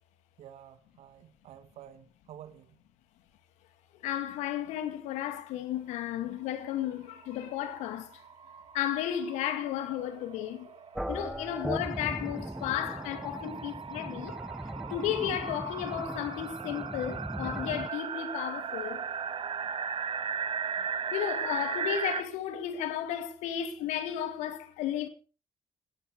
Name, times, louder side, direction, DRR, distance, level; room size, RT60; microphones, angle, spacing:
voice 1, 0.4-2.8, right 10 dB, 60° right, 1.8 m, -50 dB
voice 2, 4.0-8.2 8.7-10.7 11.1-14.4 14.9-19.1 20.8-25.1, left 11 dB, 70° left, 2.4 m, -34 dB
sound 1, 6.6-6.7 6.9-7.0 7.2-22.2, right 7 dB, 45° right, 1.6 m, -37 dB
sound 2, 11.0-17.9, equal, 5° right, 1.2 m, -39 dB
18.0 x 12.5 x 5.0 m
hypercardioid pair, 45°, 12 cm